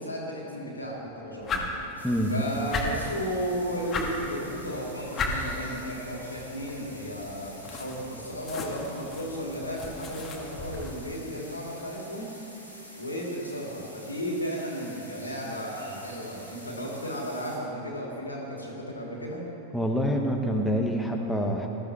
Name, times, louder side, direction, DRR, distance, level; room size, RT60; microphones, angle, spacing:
voice 1, 0.0-1.7 2.3-12.3 12.9-19.5, equal, 80° left, -2 dB, 2.9 m, -34 dB
sound 1, 1.4-10.9, left 3 dB, 25° left, 1.8 m, -36 dB
sound 2, 2.0-17.6, equal, 90° right, 2.3 m, -48 dB
voice 2, 19.7-21.7, equal, ahead, 0 dB, 1.3 m, -26 dB
20.0 x 13.5 x 3.5 m, 3.0 s
figure-of-eight pair, 90°, 0 cm